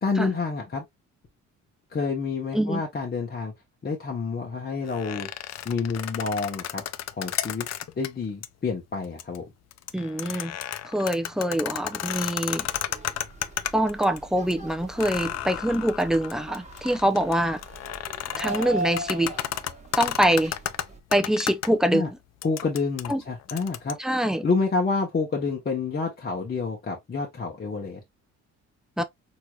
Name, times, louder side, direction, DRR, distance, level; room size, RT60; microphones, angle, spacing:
voice 1, 0.0-0.8 1.9-3.5 3.8-5.3 5.6-6.8 7.2-7.7 8.0-9.4 21.9-22.1 22.4-24.0 24.4-28.0, left 4 dB, 35° left, 1.0 m, -28 dB
sound 1, 4.9-8.1 8.4-8.5 9.0-9.4 9.7-14.2 14.5-14.6 15.0-21.7 22.4-23.9, left 12 dB, 60° left, 0.5 m, -33 dB
voice 2, 9.9-10.5 10.8-12.7 13.7-17.6 18.4-19.3 20.0-20.5 21.1-22.1 23.1-23.2 24.0-24.4 29.0-29.1, right 1 dB, ahead, 0.6 m, -24 dB
sound 2, 12.6-21.0, right 2 dB, 25° right, 1.2 m, -39 dB
4.6 x 3.0 x 2.3 m
cardioid pair, 90°, 30 cm